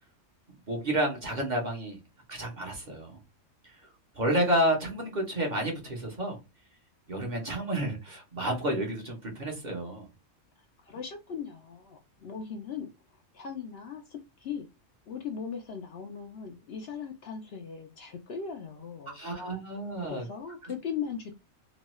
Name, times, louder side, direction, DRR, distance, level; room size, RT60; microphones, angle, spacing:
voice 1, 0.7-2.0 2.3-3.2 3.6-3.8 4.1-6.4 7.1-10.1 19.1-20.2, right 1 dB, 40° right, 1 dB, 0.8 m, -30 dB
voice 2, 10.8-14.7 15.1-19.4 20.0-21.3, left 6 dB, 65° left, 4 dB, 0.7 m, -39 dB
3.0 x 2.2 x 2.9 m, 0.27 s
omnidirectional pair, 1.4 m